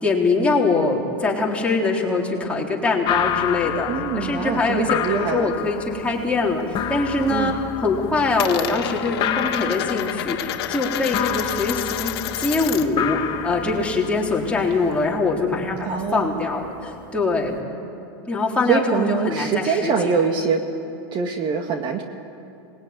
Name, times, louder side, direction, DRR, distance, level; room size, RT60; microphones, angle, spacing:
voice 1, 0.0-3.9 4.1-17.6 18.3-20.1, left 3 dB, 10° left, -2 dB, 3.8 m, -23 dB
sound 1, 3.0-17.6, left 9 dB, 35° left, 1.5 m, -30 dB
voice 2, 3.9-5.5 7.3-7.5 15.8-16.4 18.7-20.7 21.1-22.0, right 5 dB, 35° right, 4 dB, 1.8 m, -23 dB
Coin (dropping), 5.5-6.7 7.0-7.5 7.8-13.1 13.3-15.0, left 12 dB, 65° left, 1.9 m, -31 dB
26.0 x 21.0 x 9.6 m, 2.7 s
supercardioid pair, 130°, 14 cm